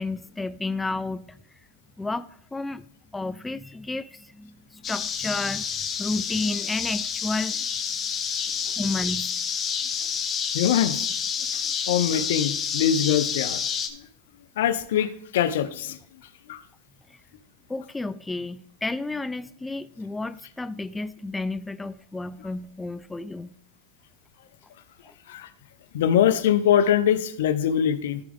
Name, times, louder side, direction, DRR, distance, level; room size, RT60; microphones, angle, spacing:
voice 1, 0.0-1.4 2.0-2.8 3.1-5.6 6.0-7.6 8.8-9.3 17.1-17.2 17.7-23.5 25.1-25.2, left 2 dB, 10° left, 0.3 m, -31 dB
sound 1, 4.8-13.9, left 7 dB, 30° left, 1.0 m, -29 dB
voice 2, 10.5-11.1 11.9-13.6 14.6-16.0 16.5-16.6 25.3-25.5 25.9-28.2, left 9 dB, 75° left, 0.7 m, -23 dB
14.0 x 4.9 x 3.6 m
hypercardioid pair, 120°, 0 cm